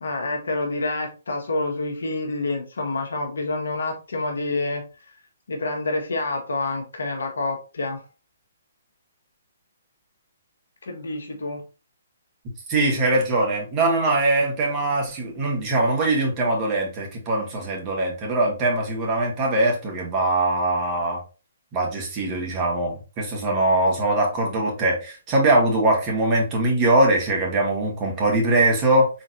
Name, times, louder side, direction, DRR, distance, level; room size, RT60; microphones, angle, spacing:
voice 1, 0.0-4.8 5.5-8.1 10.8-11.6, left 2 dB, 75° left, 3 dB, 1.3 m, -28 dB
voice 2, 12.7-21.2 21.7-29.1, right 2 dB, 30° right, 0 dB, 1.8 m, -22 dB
4.2 x 3.8 x 2.6 m, 0.32 s
hypercardioid pair, 135°, 0 cm